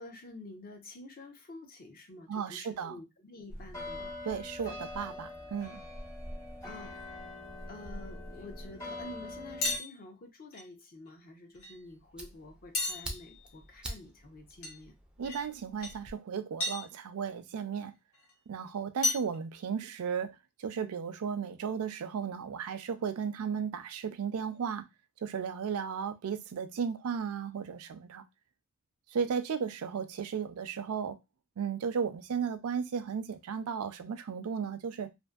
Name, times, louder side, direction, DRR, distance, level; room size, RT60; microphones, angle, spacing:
voice 1, 0.0-4.2 4.7-4.8 6.6-6.9 7.7-14.9, left 2 dB, 45° left, 0.6 m, -49 dB
voice 2, 2.3-3.0 4.2-5.8 15.2-17.9 18.5-24.8 25.2-28.2 29.1-31.2 31.6-35.1, right 6 dB, 80° right, 0.4 m, -35 dB
sound 1, 3.5-9.8, left 1 dB, 15° left, 0.8 m, -43 dB
sound 2, 9.6-9.9 10.5-10.6 11.6-11.8 12.7-13.4 14.6-14.7 15.2-15.4 15.8-15.9 16.6-16.9 18.2-18.3 19.0-19.3, left 2 dB, 75° left, 0.9 m, -32 dB
Fire, 11.5-16.1, right 1 dB, 5° right, 0.4 m, -47 dB
2.6 x 2.5 x 2.3 m
head